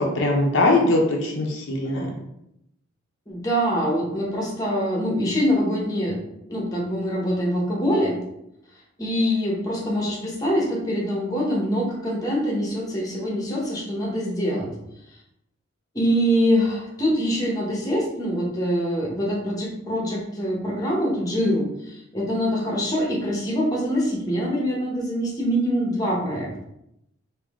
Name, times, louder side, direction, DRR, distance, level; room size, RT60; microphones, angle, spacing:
voice 1, 0.0-2.1, left 2 dB, 65° left, -1 dB, 0.7 m, -21 dB
voice 2, 3.3-6.2 6.5-8.2 9.0-14.7 15.9-26.5, equal, 15° left, -3 dB, 0.9 m, -24 dB
3.6 x 2.7 x 3.5 m, 0.81 s
head